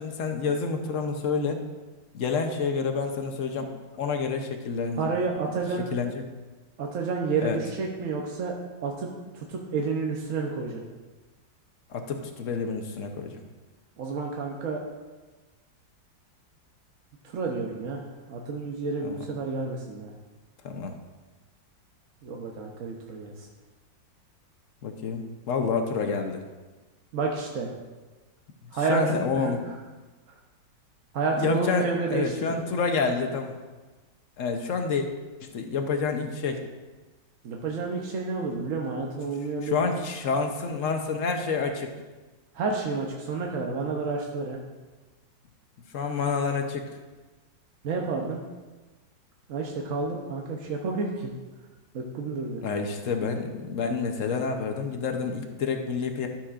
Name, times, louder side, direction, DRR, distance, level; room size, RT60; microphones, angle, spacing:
voice 1, 0.0-1.6 2.1-5.1 5.9-6.2 7.4-7.6 11.9-13.4 19.0-19.2 20.6-21.0 24.8-26.4 28.9-29.6 31.4-33.6 34.4-35.1 35.4-36.6 39.6-41.9 45.9-46.9 52.6-56.3, left 5 dB, 60° left, 5 dB, 0.9 m, -28 dB
voice 2, 5.0-5.9 6.8-8.6 8.8-9.1 9.3-10.8 14.0-14.8 17.2-20.1 22.2-23.5 27.1-27.7 28.7-29.5 31.1-32.6 37.4-39.8 42.5-44.6 47.8-48.4 49.5-51.3 51.9-52.6, right 4 dB, 55° right, 0 dB, 0.9 m, -30 dB
12.5 x 7.1 x 2.5 m, 1.2 s
omnidirectional pair, 2.0 m